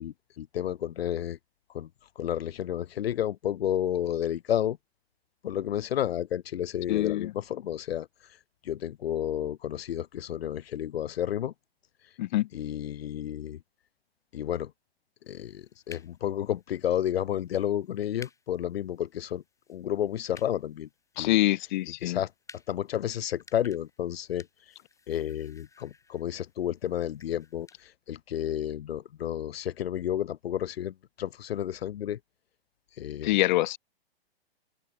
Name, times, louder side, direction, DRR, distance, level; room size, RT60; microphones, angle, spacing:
voice 1, 0.0-1.4 1.7-1.9 2.2-4.8 5.4-8.1 8.6-11.5 12.5-13.6 14.3-14.7 15.3-19.4 19.7-20.9 21.2-21.4 22.0-22.3 22.7-24.5 25.1-32.2 33.0-33.4, left 11 dB, 70° left, 0.7 m, -31 dB
voice 2, 6.9-7.3 12.2-12.5 21.2-22.2 33.2-33.8, left 16 dB, 50° left, 1.2 m, -25 dB
sound 1, 15.3-27.8, left 4 dB, 10° left, 4.7 m, -56 dB
open air
hypercardioid pair, 120°, 31 cm